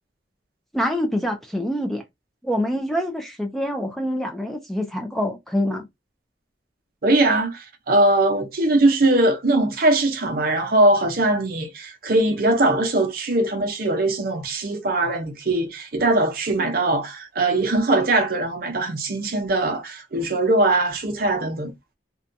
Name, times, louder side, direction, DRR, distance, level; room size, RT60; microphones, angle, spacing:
voice 1, 0.7-2.0 2.4-5.8, equal, ahead, 0.3 m, -25 dB
voice 2, 7.0-21.7, right 2 dB, 50° right, 0.6 m, -21 dB
2.6 x 2.2 x 2.5 m
head